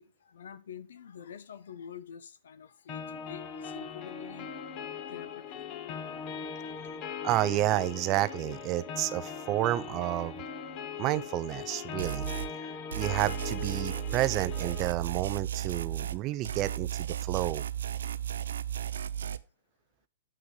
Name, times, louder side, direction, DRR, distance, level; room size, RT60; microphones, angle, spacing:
voice 1, 0.0-4.5 5.1-5.6 5.9-6.0 18.1-18.2, left 8 dB, 70° left, 1.0 m, -47 dB
sound 1, 2.9-14.9, left 6 dB, 25° left, 0.8 m, -40 dB
voice 2, 7.2-10.4 11.0-12.3 12.9-17.6, right 16 dB, 20° right, 0.4 m, -30 dB
sound 2, 12.0-12.5 12.9-16.2 16.4-19.4, right 10 dB, 85° right, 0.6 m, -34 dB
8.0 x 5.9 x 3.7 m
hypercardioid pair, 175°, 0 cm